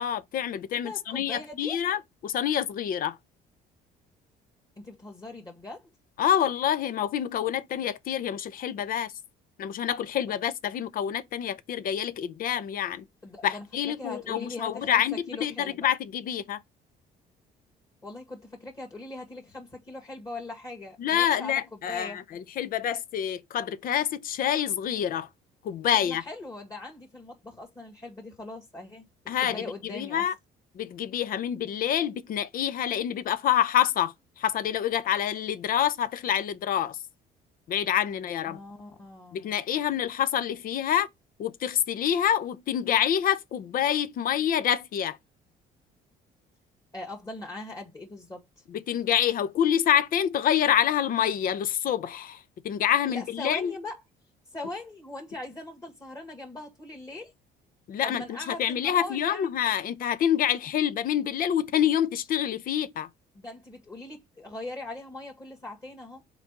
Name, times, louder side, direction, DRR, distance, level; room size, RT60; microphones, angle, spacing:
voice 1, 0.0-3.2 6.2-9.1 9.6-13.1 13.4-16.6 21.0-25.3 25.6-26.2 29.3-30.3 30.7-37.0 37.7-38.6 39.3-41.1 41.4-45.2 48.7-53.7 57.9-63.1, left 10 dB, 60° left, 0.7 m, -27 dB
voice 2, 0.7-1.8 4.8-5.9 13.2-15.0 15.3-15.8 18.0-22.2 25.9-29.1 29.4-30.2 38.5-39.5 46.9-48.6 53.1-54.0 54.5-57.3 58.0-59.6 63.3-66.2, left 2 dB, 20° left, 1.9 m, -40 dB
5.0 x 3.9 x 5.3 m
cardioid pair, 110°, 17 cm